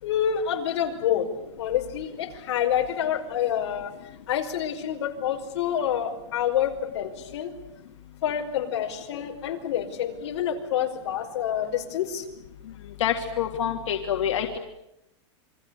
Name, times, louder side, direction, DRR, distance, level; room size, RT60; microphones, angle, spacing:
voice 1, 0.0-1.3 1.6-3.9 4.3-7.5 8.2-12.2, left 9 dB, 60° left, 2 dB, 5.3 m, -27 dB
voice 2, 13.0-14.6, left 9 dB, 90° left, 2 dB, 3.0 m, -26 dB
29.0 x 24.0 x 8.5 m, 0.86 s
supercardioid pair, 170°, 15 cm